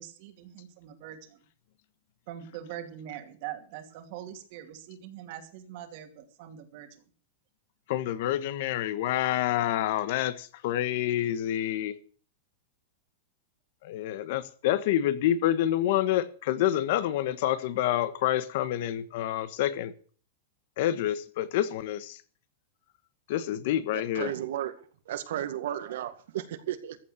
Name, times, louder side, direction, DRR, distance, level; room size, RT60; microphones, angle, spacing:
voice 1, 0.0-1.4 2.3-6.9, right 11 dB, 45° right, 2.5 m, -43 dB
voice 2, 7.9-12.0 13.8-19.9 20.8-22.2 23.3-24.3, left 12 dB, 50° left, 1.3 m, -28 dB
voice 3, 23.9-24.7 25.1-27.0, right 11 dB, 70° right, 1.9 m, -34 dB
14.5 x 8.7 x 6.6 m
supercardioid pair, 170°, 0 cm